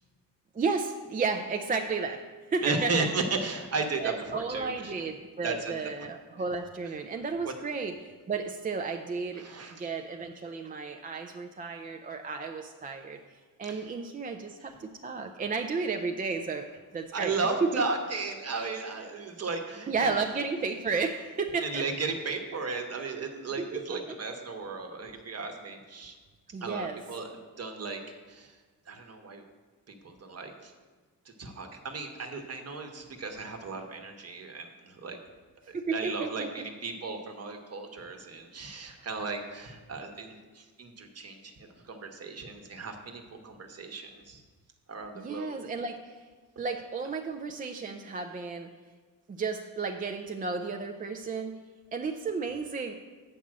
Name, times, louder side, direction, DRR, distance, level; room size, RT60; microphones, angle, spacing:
voice 1, 0.5-2.2 2.5-3.1 4.0-7.9 8.3-9.5 9.8-13.2 13.6-16.7 16.9-17.3 17.6-17.8 19.9-21.8 23.6-24.2 26.5-27.0 35.7-36.7 45.1-46.2 46.6-48.7 49.3-51.6 51.9-52.9, right 4 dB, 25° right, 4 dB, 0.4 m, -33 dB
voice 2, 2.6-4.9 5.4-5.7 6.0-6.1 7.4-7.5 9.3-9.9 13.7-13.9 17.1-20.1 21.6-26.1 26.6-27.3 27.6-28.0 28.3-28.5 28.9-29.4 29.9-30.7 31.4-35.2 35.7-41.5 41.8-44.4 44.9-45.6, right 3 dB, 45° right, 4 dB, 1.1 m, -35 dB
7.3 x 5.4 x 7.4 m, 1.4 s
cardioid pair, 130°, 35 cm